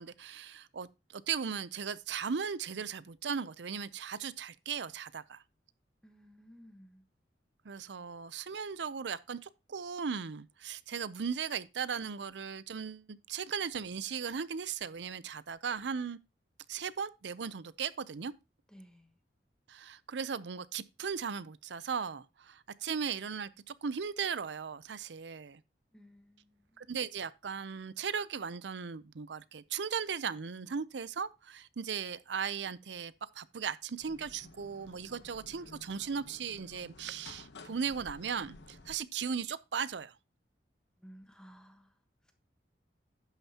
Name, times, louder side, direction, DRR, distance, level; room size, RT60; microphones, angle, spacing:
voice 1, 0.0-5.4 7.6-16.2 16.7-18.3 19.7-25.6 26.8-40.1, right 6 dB, 80° right, 0.6 m, -37 dB
voice 2, 6.0-7.1 18.7-19.2 25.9-26.8 41.0-42.3, equal, 5° left, 1.2 m, -57 dB
sound 1, 34.0-39.0, left 2 dB, 75° left, 1.1 m, -53 dB
11.5 x 9.0 x 2.9 m
head